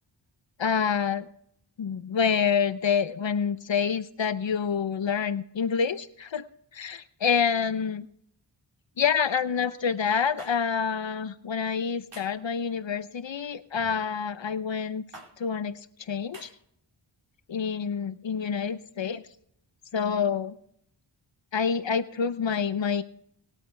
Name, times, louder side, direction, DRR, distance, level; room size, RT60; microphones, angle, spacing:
voice 1, 0.6-1.3 1.8-6.4 6.7-8.1 9.0-15.0 15.4-15.8 16.1-16.5 17.5-19.2 19.9-20.6 21.5-23.0, left 6 dB, 65° left, 13 dB, 0.8 m, -27 dB
sound 1, 10.4-10.5 12.1-12.4 13.7-14.0 15.1-15.3 16.3-16.5, right 1 dB, 60° right, 4.2 m, -45 dB
20.5 x 8.6 x 3.3 m, 0.68 s
wide cardioid pair, 60°, 48 cm